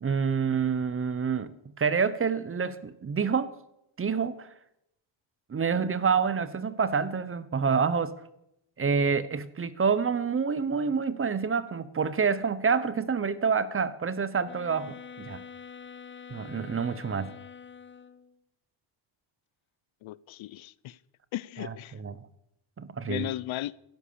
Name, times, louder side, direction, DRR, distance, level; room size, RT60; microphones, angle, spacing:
voice 1, 0.0-3.6 4.0-4.5 5.5-8.2 8.8-15.4 16.3-17.3 21.6-22.2 22.8-23.3, right 6 dB, 25° right, 0.7 m, -28 dB
sound 1, 14.4-18.3, left 6 dB, 25° left, 0.8 m, -46 dB
voice 2, 20.0-21.0 21.3-21.9 23.1-23.7, left 15 dB, 75° left, 0.6 m, -35 dB
15.5 x 12.0 x 6.8 m
wide cardioid pair, 175°, 48 cm